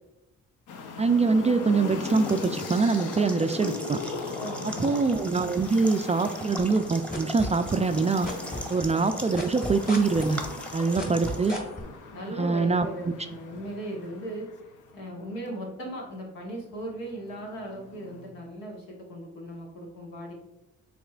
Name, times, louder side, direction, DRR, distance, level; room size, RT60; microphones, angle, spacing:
sound 1, 0.7-15.5 16.6-18.3, left 5 dB, 60° left, 0.7 m, -39 dB
voice 1, 1.0-4.0 4.6-8.3 8.7-10.4 10.7-11.6 12.4-13.1, right 4 dB, 20° right, 7 dB, 0.3 m, -24 dB
sound 2, 2.0-11.5, right 1 dB, 5° left, 0.9 m, -40 dB
voice 2, 4.4-5.1 12.1-14.5 14.9-20.3, right 1 dB, 80° left, -1 dB, 1.2 m, -38 dB
sound 3, 6.6-8.0 8.2-11.8, left 1 dB, 25° left, 1.6 m, -34 dB
5.8 x 3.6 x 2.4 m, 0.93 s
hypercardioid pair, 45°, 34 cm